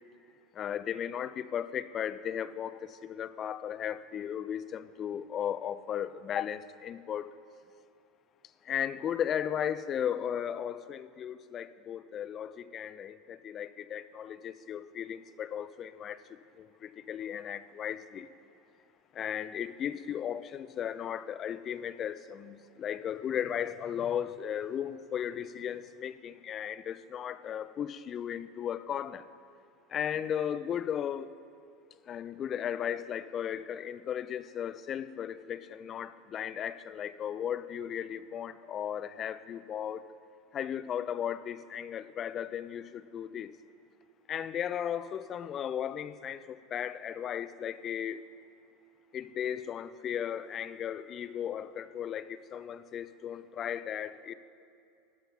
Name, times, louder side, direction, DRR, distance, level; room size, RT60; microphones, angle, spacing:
voice 1, 0.6-7.3 8.7-16.2 17.1-18.3 19.2-29.2 29.9-31.3 32.1-40.0 40.5-43.5 44.3-46.4 46.7-48.2 49.1-54.3, left 9 dB, 40° left, 14 dB, 0.4 m, -35 dB
11.5 x 5.7 x 5.7 m, 2.5 s
hypercardioid pair, 85°, 0 cm